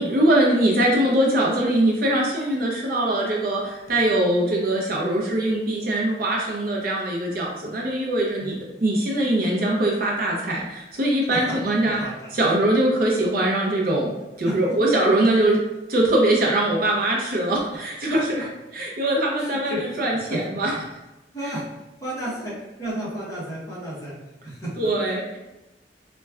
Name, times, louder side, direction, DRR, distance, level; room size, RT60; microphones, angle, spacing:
voice 1, 0.0-12.0 12.3-14.1 14.4-15.6 15.9-18.5 18.7-20.7 24.8-25.4, right 1 dB, 50° right, -2 dB, 0.5 m, -22 dB
voice 2, 12.0-12.3 14.4-14.8 18.1-18.2 19.4-20.4 21.3-21.6 22.0-24.2 24.4-24.9, right 1 dB, 15° left, -8 dB, 0.9 m, -32 dB
4.1 x 2.2 x 2.3 m, 1.0 s
head